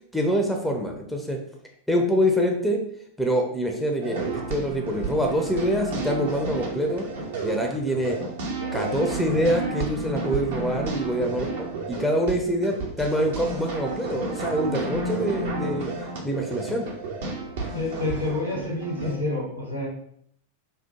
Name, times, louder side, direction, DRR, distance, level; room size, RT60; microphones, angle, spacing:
voice 1, 0.1-1.4 1.9-2.8 3.2-4.2 4.5-7.0 7.4-8.2 8.7-15.9 16.2-16.9, equal, ahead, 2 dB, 0.4 m, -25 dB
sound 1, 4.0-19.1, right 3 dB, 55° right, 0.5 m, -31 dB
voice 2, 17.7-19.9, left 2 dB, 90° left, -1 dB, 0.7 m, -28 dB
2.7 x 2.0 x 2.8 m, 0.67 s
figure-of-eight pair, 90°, 0 cm